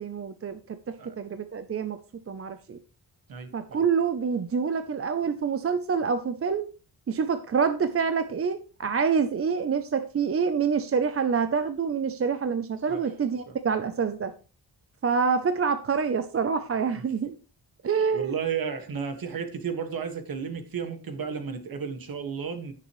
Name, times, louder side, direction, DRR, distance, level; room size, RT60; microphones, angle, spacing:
voice 1, 0.0-2.0 2.3-2.8 3.5-6.7 7.1-14.3 15.0-17.4 17.8-18.3, right 6 dB, 35° right, 0.6 m, -27 dB
voice 2, 3.3-3.9 12.9-13.0 18.1-22.7, right 6 dB, 55° right, 1.8 m, -33 dB
17.0 x 6.8 x 3.1 m
wide cardioid pair, 180°, 41 cm